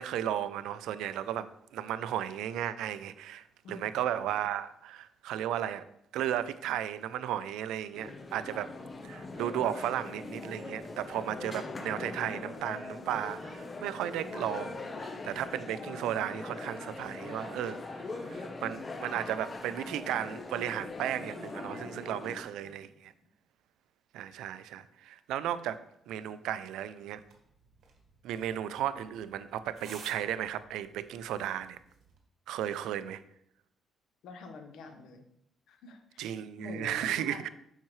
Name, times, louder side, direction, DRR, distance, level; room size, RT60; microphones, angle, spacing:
voice 1, 0.0-5.9 6.1-8.7 9.0-23.1 24.1-25.8 26.1-27.2 28.2-31.8 32.5-33.2 36.2-37.5, right 11 dB, 90° right, 0.4 m, -35 dB
voice 2, 3.6-4.0 22.6-22.8 34.2-35.3 35.7-37.4, left 4 dB, 80° left, 1.0 m, -47 dB
sound 1, 7.9-22.4, left 3 dB, 35° left, 0.8 m, -41 dB
sound 2, 27.2-32.2, right 5 dB, 70° right, 1.5 m, -55 dB
7.3 x 5.7 x 3.1 m
cardioid pair, 90°, 0 cm